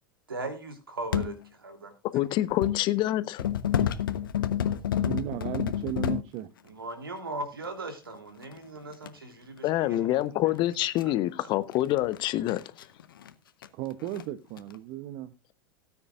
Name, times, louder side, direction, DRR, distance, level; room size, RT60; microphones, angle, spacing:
voice 1, 0.3-1.3 1.6-1.9 6.7-10.3, right 2 dB, 80° right, 3.0 m, -38 dB
sound 1, 1.1-1.3 2.2-2.8 3.4-6.2 7.6-7.7 8.4-9.1 10.1-10.2 10.5-10.6 11.0-11.1 11.7-13.3 13.6-13.7 14.0-14.2 14.6-14.8, left 9 dB, 70° left, 1.1 m, -29 dB
voice 2, 2.1-3.5 9.6-12.6, left 15 dB, 40° left, 1.0 m, -26 dB
voice 3, 5.0-6.5 13.7-15.3, right 13 dB, 45° right, 0.8 m, -35 dB
18.0 x 9.8 x 2.5 m
figure-of-eight pair, 85°, 12 cm